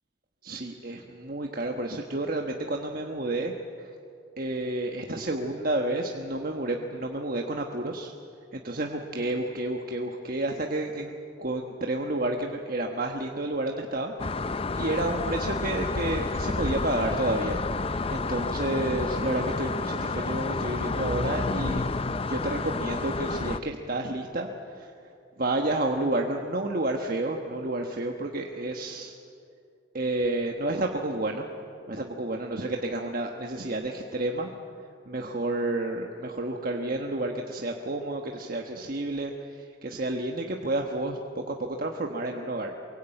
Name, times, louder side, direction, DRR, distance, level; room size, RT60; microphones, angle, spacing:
voice 1, 0.4-3.5 3.8-3.9 4.4-8.1 8.5-14.1 14.5-17.6 18.1-21.8 22.3-24.5 24.7-25.1 25.4-29.2 29.9-31.5 31.9-34.5 35.1-42.7, right 2 dB, 45° right, 2 dB, 1.3 m, -30 dB
sound 1, 14.2-23.6, left 3 dB, 30° left, 0.6 m, -30 dB
23.5 x 22.5 x 9.0 m, 2.5 s
head